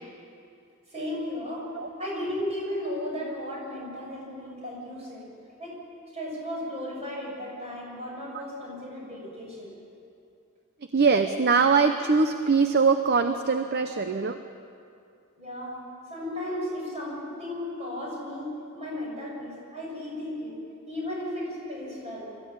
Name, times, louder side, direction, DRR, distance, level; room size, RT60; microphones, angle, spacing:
voice 1, 0.9-1.7 2.0-5.3 5.6-5.8 6.1-9.7 15.4-15.8 16.1-20.5 20.9-22.3, left 1 dB, 30° right, -3 dB, 6.9 m, -35 dB
voice 2, 10.9-14.4, right 5 dB, 45° right, 8 dB, 0.7 m, -22 dB
24.0 x 14.0 x 8.7 m, 2.5 s
head